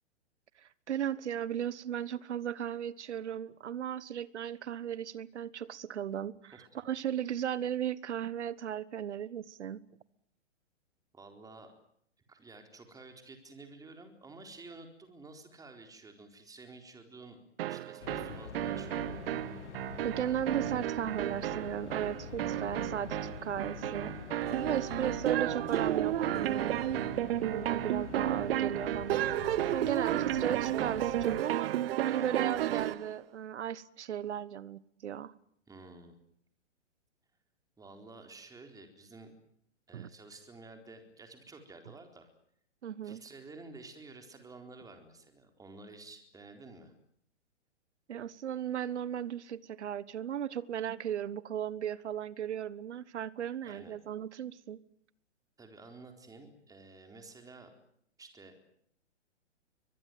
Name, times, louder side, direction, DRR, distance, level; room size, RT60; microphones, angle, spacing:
voice 1, 0.6-9.8 20.0-24.1 24.6-26.9 27.5-29.3 29.7-31.7 32.0-35.3 39.9-40.1 42.8-43.2 48.1-54.8, right 9 dB, 70° right, 20 dB, 1.3 m, -36 dB
voice 2, 11.1-11.7 12.3-19.6 24.8-25.1 35.7-36.2 37.8-39.3 39.9-42.3 43.0-46.9 53.6-54.0 55.6-57.7 58.2-58.5, right 3 dB, 10° right, 5 dB, 4.2 m, -51 dB
sound 1, 17.6-33.1, right 13 dB, 55° right, 1.0 m, -32 dB
sound 2, 18.0-31.4, left 8 dB, 70° left, 1.6 m, -45 dB
23.5 x 21.0 x 9.3 m, 0.68 s
hypercardioid pair, 125°, 36 cm